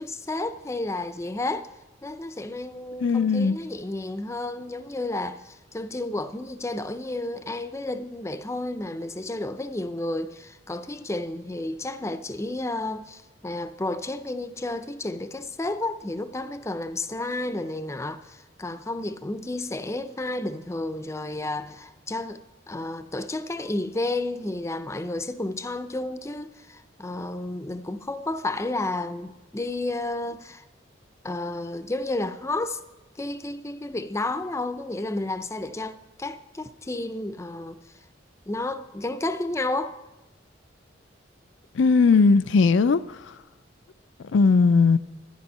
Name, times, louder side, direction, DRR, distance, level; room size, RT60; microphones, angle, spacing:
voice 1, 0.0-1.7 2.0-22.4 22.7-30.6 31.2-32.8 33.2-37.8 38.5-40.0, left 2 dB, 15° left, 0.5 m, -31 dB
voice 2, 3.0-3.6 41.8-43.0 44.3-45.0, left 4 dB, 80° left, 0.4 m, -18 dB
13.5 x 10.5 x 5.5 m
head